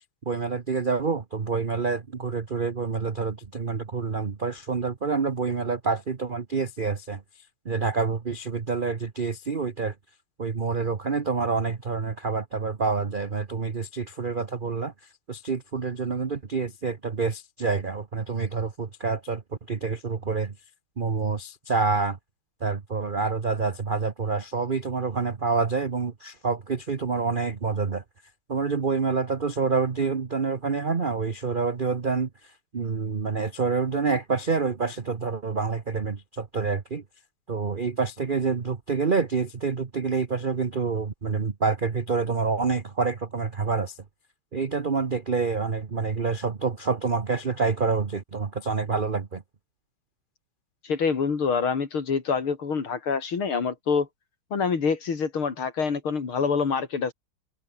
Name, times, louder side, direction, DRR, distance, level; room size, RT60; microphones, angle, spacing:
voice 1, 0.3-7.2 7.6-9.9 10.4-14.9 15.3-19.4 19.7-20.5 21.0-22.2 22.6-28.0 28.5-37.0 37.5-44.0 44.5-49.4, right 4 dB, 35° right, 0.9 m, -27 dB
voice 2, 50.8-54.1 54.5-57.1, left 5 dB, 85° left, 3.8 m, -26 dB
omnidirectional pair, 2.3 m